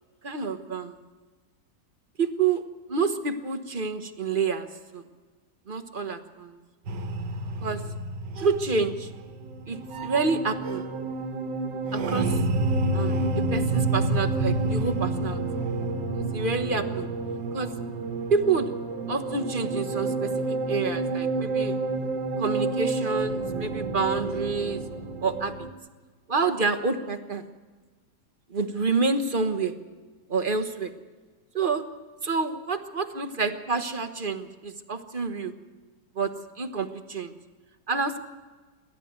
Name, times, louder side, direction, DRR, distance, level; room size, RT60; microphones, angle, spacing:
voice 1, 0.2-1.0 2.2-2.6 2.9-4.7 4.9-5.1 5.7-6.6 7.6-7.8 8.4-9.1 9.7-10.8 11.9-12.4 12.9-15.4 16.1-17.1 17.5-17.7 18.3-18.7 19.1-21.8 22.4-24.8 25.2-25.5 26.3-27.4 28.5-29.7 30.3-30.9 31.5-31.8 32.2-35.5 36.1-37.3 37.9-38.2, right 4 dB, 35° right, 8 dB, 1.2 m, -28 dB
sound 1, 6.9-25.7, right 3 dB, 80° right, 1.9 m, -29 dB
27.5 x 12.5 x 8.1 m, 1.3 s
omnidirectional pair, 1.9 m